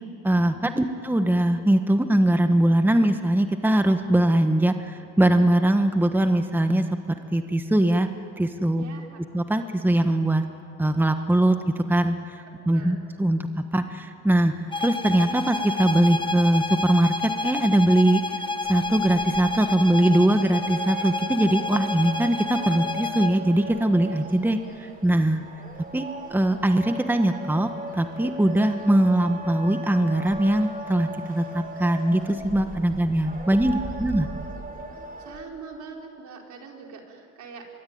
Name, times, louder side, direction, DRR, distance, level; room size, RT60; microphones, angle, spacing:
voice 1, 0.2-6.8 7.3-8.1 8.4-8.8 9.3-10.4 10.8-13.4 13.7-14.5 14.8-18.2 18.7-25.4 25.9-26.0 26.3-34.3, right 1 dB, 5° right, 7 dB, 1.3 m, -21 dB
voice 2, 8.7-9.2 12.4-13.0 24.8-24.9 34.2-34.3 35.2-37.6, right 5 dB, 70° right, 1 dB, 4.2 m, -43 dB
sound 1, 14.7-23.4, left 3 dB, 15° left, 1.2 m, -29 dB
sound 2, 18.6-35.4, right 2 dB, 30° right, 4.2 m, -38 dB
25.0 x 22.5 x 9.5 m, 2.6 s
cardioid pair, 90°, 30 cm